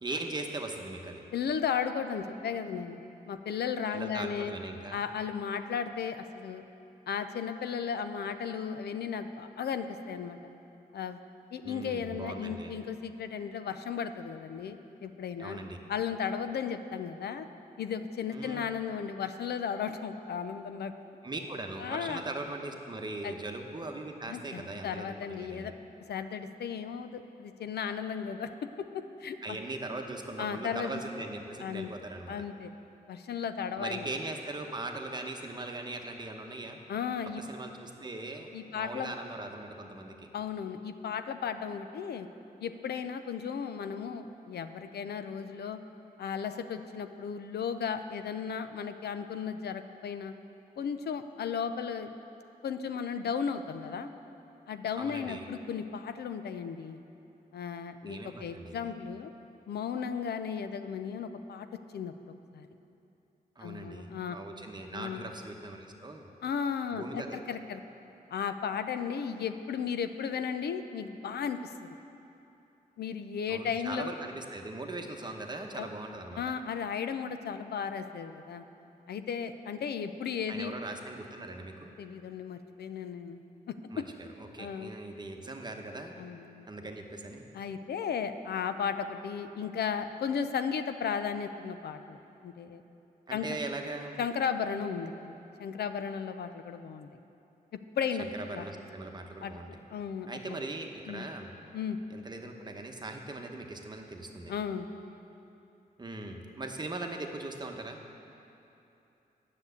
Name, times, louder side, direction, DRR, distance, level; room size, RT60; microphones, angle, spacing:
voice 1, 0.0-1.2 3.9-5.0 11.6-12.7 15.4-15.8 18.3-18.6 21.2-25.7 29.4-32.4 33.8-36.8 37.4-40.3 55.0-55.5 58.0-58.9 63.6-66.3 66.9-67.4 73.5-76.5 80.5-81.9 83.9-86.1 86.7-87.5 93.3-94.2 98.2-99.7 100.3-101.5 102.1-104.5 106.0-108.0, right 2 dB, 25° right, 3 dB, 1.0 m, -40 dB
voice 2, 1.3-3.0 3.3-4.5 4.9-6.6 7.1-10.4 10.9-11.2 11.5-15.6 15.9-17.5 17.8-20.9 21.8-22.2 23.2-23.3 24.3-25.7 26.1-28.5 28.9-29.6 30.4-30.9 31.6-31.9 32.3-32.7 33.1-34.1 36.9-37.4 38.5-39.1 40.3-42.3 42.6-45.8 46.2-50.3 50.8-52.1 52.6-54.1 54.7-57.0 57.5-59.3 59.7-61.7 61.9-62.1 62.5-62.7 63.6-64.4 64.9-65.3 66.4-67.8 68.3-72.0 73.0-74.1 75.8-75.9 76.4-78.6 79.1-80.7 82.0-83.4 83.7-84.0 84.6-84.9 86.2-86.7 87.5-92.8 93.3-93.6 94.2-97.1 97.7-98.2 98.5-98.6 99.4-100.6 101.1-101.2 101.7-102.0 104.5-104.9, left 7 dB, 85° left, 9 dB, 0.5 m, -35 dB
9.9 x 6.7 x 8.1 m, 2.9 s
wide cardioid pair, 105°, 16 cm